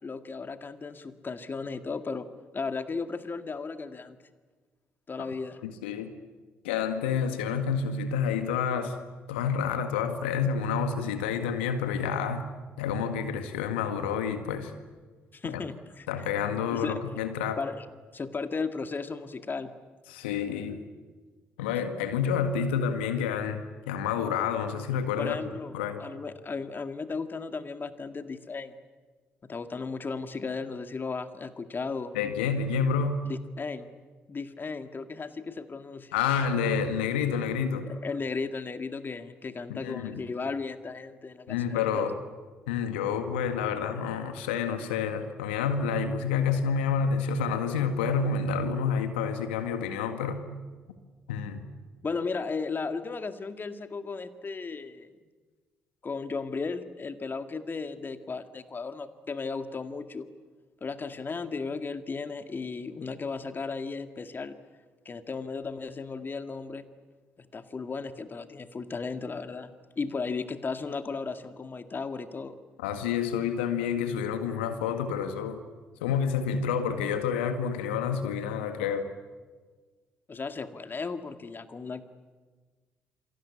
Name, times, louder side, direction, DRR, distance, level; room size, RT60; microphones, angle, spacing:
voice 1, 0.0-2.3 2.5-4.2 5.1-5.6 15.3-16.2 16.7-17.0 17.6-17.9 18.1-19.7 25.2-25.7 26.0-28.8 29.4-32.1 33.2-33.9 34.3-36.1 37.9-42.1 52.0-55.1 56.0-60.3 60.8-64.6 65.1-66.9 67.4-72.6 80.3-82.0, left 4 dB, 35° left, 9 dB, 2.1 m, -35 dB
voice 2, 5.6-6.1 6.6-9.0 9.3-12.5 12.8-14.7 15.4-15.6 16.1-17.6 20.1-20.8 21.6-25.4 25.7-26.0 32.1-33.3 36.1-37.9 39.7-40.2 41.5-42.2 42.7-50.4 51.3-51.6 72.8-75.6 76.0-79.1, left 6 dB, 80° left, 8 dB, 1.8 m, -29 dB
28.0 x 23.0 x 8.6 m, 1.4 s
hypercardioid pair, 45°, 6 cm